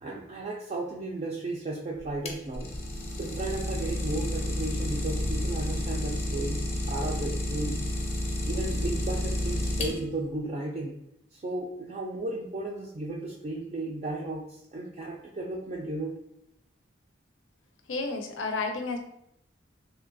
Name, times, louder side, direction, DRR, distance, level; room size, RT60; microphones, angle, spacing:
voice 1, 0.0-2.7 3.2-7.8 8.5-10.9 11.3-16.2, right 2 dB, 35° right, -2 dB, 0.3 m, -34 dB
Idling, 2.0-10.3, left 1 dB, 35° left, 0.5 m, -30 dB
voice 2, 17.9-19.0, left 3 dB, 85° left, 5 dB, 0.5 m, -31 dB
3.1 x 2.7 x 2.5 m, 0.78 s
head